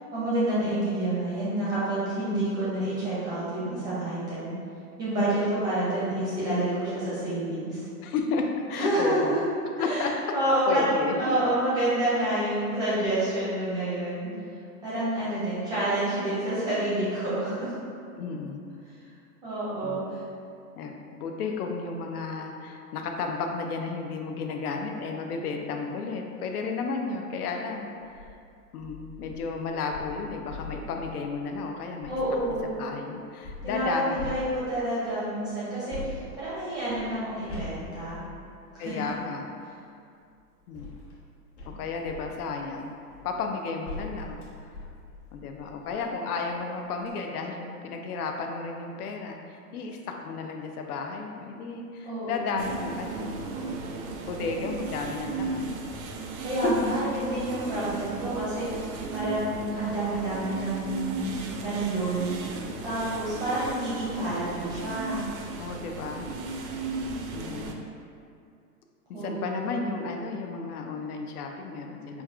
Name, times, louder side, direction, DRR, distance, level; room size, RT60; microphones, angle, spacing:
voice 1, 0.1-4.5 5.0-7.9 8.8-9.4 9.8-14.3 14.8-17.7 19.4-20.2 32.1-32.8 33.6-38.2 38.7-39.0 52.0-52.6 56.4-62.4 62.8-65.2 69.1-69.8, right 1 dB, 10° right, -11 dB, 0.5 m, -28 dB
voice 2, 8.0-9.4 9.8-10.1 10.7-11.3 18.2-18.6 19.8-20.0 20.8-28.4 28.7-32.2 32.6-34.2 38.8-39.5 40.7-40.9 41.7-42.9 43.2-44.8 45.3-55.7 56.6-56.7 65.6-66.3 67.3-67.9 69.1-72.2, left 4 dB, 70° left, 3 dB, 0.5 m, -33 dB
sound 1, 28.0-28.3 28.8-32.8 33.4-35.0 35.9-39.3 40.2-46.1 46.6-46.7 47.0-47.1, left 2 dB, 45° left, 1.0 m, -43 dB
sound 2, 52.6-67.7, right 3 dB, 65° right, 0.5 m, -36 dB
5.2 x 2.3 x 2.3 m, 2.4 s
hypercardioid pair, 140°, 47 cm